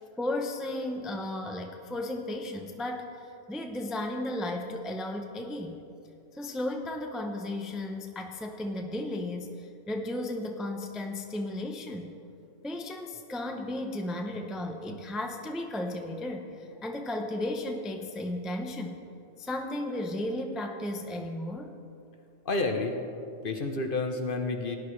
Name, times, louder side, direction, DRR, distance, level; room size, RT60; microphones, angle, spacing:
voice 1, 0.0-5.8 6.3-12.1 12.6-19.0 19.4-21.7, left 1 dB, ahead, 3 dB, 0.5 m, -34 dB
voice 2, 22.4-23.0 23.4-24.8, left 3 dB, 50° left, 5 dB, 0.9 m, -29 dB
17.5 x 10.5 x 3.2 m, 2.6 s
omnidirectional pair, 1.3 m